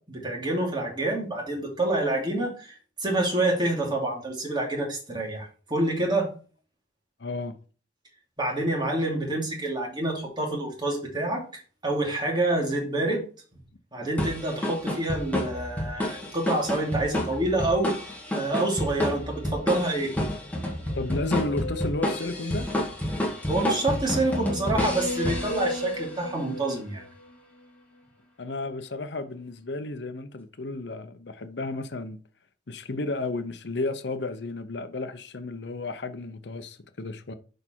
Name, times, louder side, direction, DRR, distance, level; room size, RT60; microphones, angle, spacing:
voice 1, 0.1-2.7 3.0-6.3 8.4-13.2 13.9-17.9 18.3-20.1 23.5-27.0, right 2 dB, 25° right, 2.8 m, -27 dB
voice 2, 7.2-7.6 21.0-22.7 28.4-32.2 32.7-37.3, left 3 dB, 70° left, 0.7 m, -33 dB
sound 1, 14.2-26.1, left 1 dB, 10° left, 2.0 m, -30 dB
sound 2, 20.9-22.5 23.4-27.3, left 1 dB, 40° left, 3.4 m, -36 dB
6.6 x 5.5 x 4.5 m
head